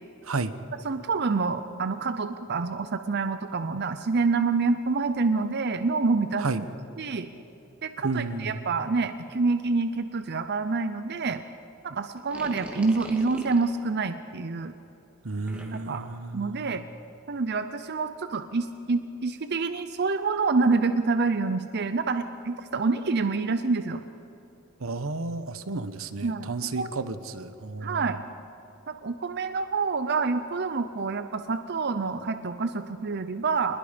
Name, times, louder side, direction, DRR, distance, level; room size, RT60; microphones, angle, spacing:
voice 1, 0.2-0.5 6.4-6.6 8.0-8.6 15.2-16.7 24.8-28.2, right 3 dB, 80° right, 12 dB, 1.0 m, -32 dB
voice 2, 0.8-6.6 7.0-7.3 7.8-11.4 11.8-14.7 15.7-16.1 16.3-16.8 17.3-24.0 26.2-26.5 26.8-26.9 27.8-28.2 28.9-33.8, right 4 dB, 55° right, 10 dB, 0.7 m, -27 dB
sound 1, 12.2-13.7 15.5-16.0, equal, 5° right, 2.3 m, -41 dB
26.0 x 20.5 x 5.2 m, 2.9 s
head